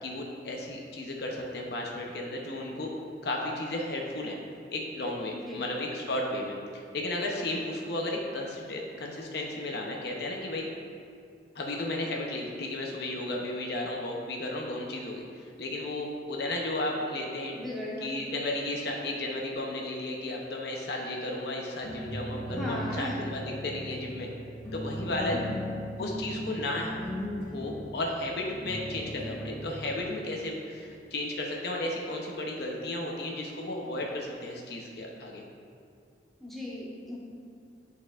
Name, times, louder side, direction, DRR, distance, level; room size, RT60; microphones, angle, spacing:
voice 1, 0.0-2.9 3.2-4.4 4.7-10.7 11.5-17.6 18.0-24.3 24.7-25.4 26.0-26.9 27.5-35.4, left 1 dB, 60° left, -1 dB, 0.7 m, -34 dB
voice 2, 17.5-18.1 22.5-23.2 25.3-25.6 36.4-37.2, left 1 dB, ahead, -7 dB, 1.1 m, -36 dB
sound 1, 21.8-30.0, equal, 15° left, 1.5 m, -38 dB
10.5 x 4.2 x 2.4 m, 2.3 s
head